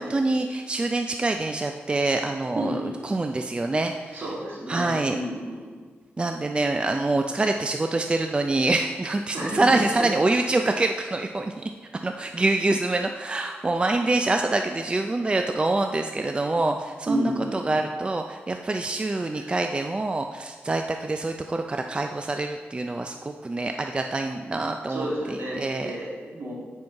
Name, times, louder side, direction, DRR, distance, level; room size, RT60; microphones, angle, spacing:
voice 1, 0.0-4.2 4.7-5.2 6.2-11.6 12.0-25.9, right 2 dB, 25° right, 5 dB, 0.4 m, -26 dB
voice 2, 2.5-3.1 4.1-5.8 9.3-10.1 17.1-17.8 19.3-19.5 24.9-26.6, right 1 dB, 70° right, -6 dB, 2.5 m, -31 dB
7.8 x 5.5 x 4.6 m, 1.5 s
wide cardioid pair, 125°, 4 cm